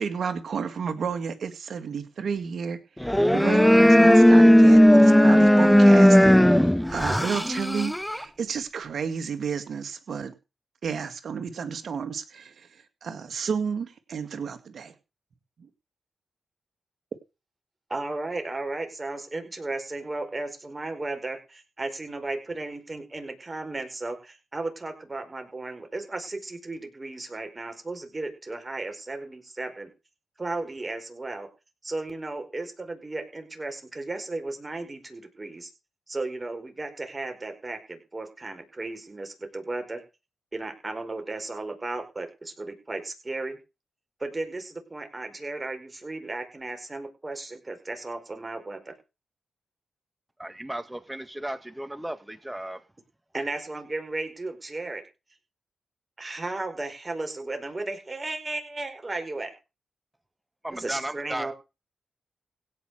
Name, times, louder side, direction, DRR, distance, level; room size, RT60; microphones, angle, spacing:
voice 1, 0.0-6.2 6.5-10.3 10.8-12.7 13.0-14.9, right 6 dB, 70° right, 2.1 m, -31 dB
sound 1, 3.0-8.2, equal, 5° left, 0.6 m, -16 dB
voice 2, 17.9-29.9 30.4-31.5 31.8-35.7 36.1-40.0 40.5-43.6 44.2-48.9 53.3-55.0 56.2-59.5 60.7-61.5, right 2 dB, 30° right, 4.8 m, -35 dB
voice 3, 50.4-52.8 60.6-61.5, right 1 dB, 10° right, 1.9 m, -35 dB
16.5 x 6.1 x 6.5 m
cardioid pair, 55°, 0 cm